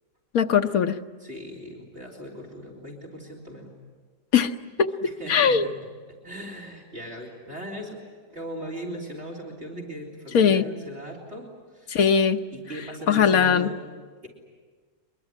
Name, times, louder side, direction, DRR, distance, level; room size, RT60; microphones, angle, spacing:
voice 1, 0.3-1.0 4.3-4.5 4.8-5.7 10.3-10.7 11.9-12.4 13.1-13.7, left 7 dB, 65° left, 7 dB, 1.4 m, -20 dB
voice 2, 1.2-3.7 5.0-5.7 6.2-8.0 8.3-11.5 11.7-12.0 12.5-13.8 14.2-14.3, equal, 45° right, -1 dB, 4.1 m, -38 dB
24.0 x 22.5 x 9.8 m, 1.5 s
omnidirectional pair, 1.6 m